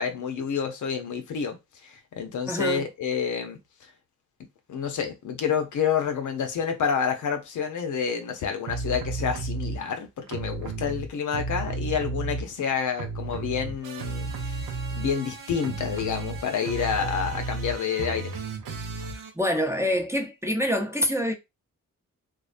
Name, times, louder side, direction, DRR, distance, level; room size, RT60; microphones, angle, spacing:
voice 1, 0.0-1.6 1.8-3.6 4.7-18.3, left 7 dB, 65° left, 0.6 m, -29 dB
voice 2, 2.5-2.9 19.3-21.3, equal, 10° right, 0.6 m, -26 dB
sound 1, 8.7-9.8 10.3-12.7 13.0-19.3, right 3 dB, 85° right, 0.6 m, -33 dB
2.3 x 2.1 x 2.4 m
supercardioid pair, 45°, 33 cm